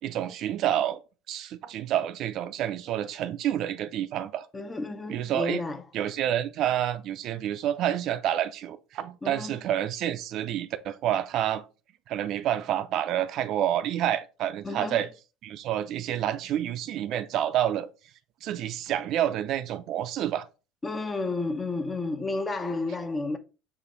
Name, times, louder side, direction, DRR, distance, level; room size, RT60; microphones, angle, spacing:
voice 1, 0.0-1.0 1.3-4.5 5.1-5.6 5.9-11.6 12.1-15.1 15.4-17.9 18.4-20.5, right 11 dB, 60° right, 0.4 m, -28 dB
voice 2, 4.5-5.8 9.2-9.6 14.6-15.0 20.8-23.4, left 3 dB, 25° left, 0.6 m, -31 dB
5.0 x 2.5 x 3.9 m
hypercardioid pair, 70°, 0 cm